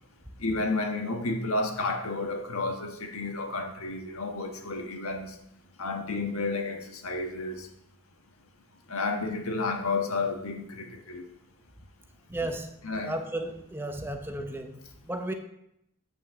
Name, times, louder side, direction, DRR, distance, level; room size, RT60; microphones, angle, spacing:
voice 1, 0.4-5.3 5.8-7.7 8.9-11.3 12.8-13.1, left 3 dB, 75° left, 3 dB, 1.4 m, -31 dB
voice 2, 12.3-12.8 13.0-15.3, right 1 dB, 10° right, 5 dB, 0.8 m, -34 dB
8.3 x 6.0 x 6.9 m, 0.78 s
head